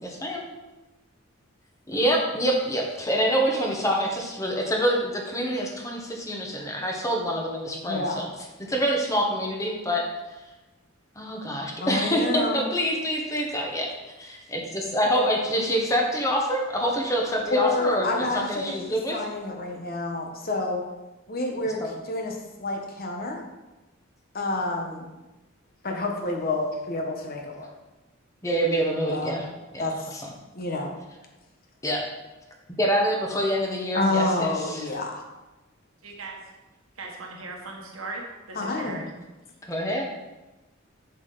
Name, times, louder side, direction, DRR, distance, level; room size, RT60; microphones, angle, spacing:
voice 1, 0.0-0.5 1.9-8.3 8.7-10.0 11.2-13.9 14.2-14.6 14.9-19.2 21.8-21.9 28.4-29.4 29.7-30.3 31.8-32.0 32.8-34.9 38.8-39.0 39.7-40.0, equal, 15° left, 0 dB, 1.2 m, -26 dB
voice 2, 7.9-8.3 11.8-12.6 17.5-20.8 21.3-23.4 24.3-25.1 25.8-27.7 29.0-29.4 29.8-30.1 30.5-30.9 33.9-35.2 38.5-39.1, left 2 dB, 45° left, 2 dB, 1.2 m, -28 dB
voice 3, 36.0-36.4 37.0-39.1, right 3 dB, 85° right, 0 dB, 1.6 m, -38 dB
7.1 x 6.6 x 4.0 m, 1.1 s
head